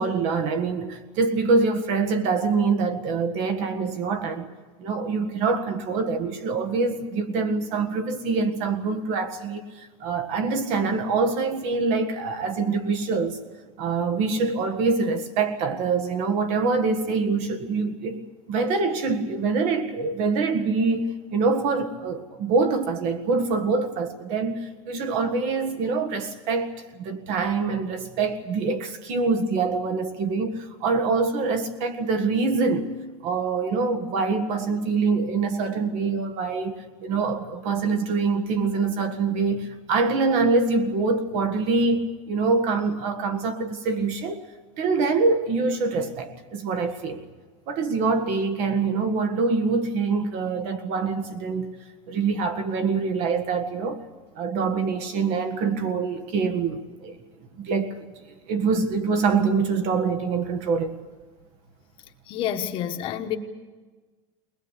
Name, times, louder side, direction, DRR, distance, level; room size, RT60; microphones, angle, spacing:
voice 1, 0.0-4.5 4.8-13.4 13.8-18.2 18.5-33.0 33.2-44.4 44.8-47.2 47.7-51.7 52.1-54.0 54.3-57.1 57.6-58.1 58.5-61.0, right 4 dB, 45° right, 1.7 m, -25 dB
voice 2, 62.3-63.4, left 10 dB, 35° left, 1.3 m, -28 dB
22.0 x 20.5 x 8.3 m
supercardioid pair, 175°, 16 cm